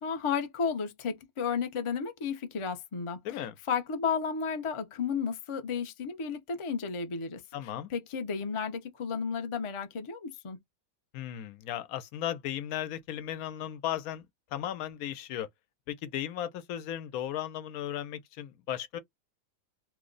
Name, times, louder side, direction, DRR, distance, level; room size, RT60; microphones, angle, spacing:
voice 1, 0.0-10.6, left 6 dB, 45° left, 0.4 m, -33 dB
voice 2, 7.5-7.9 11.1-14.3 14.5-15.5 15.9-19.0, left 11 dB, 80° left, 1.0 m, -36 dB
2.9 x 2.0 x 3.8 m
omnidirectional pair, 1.5 m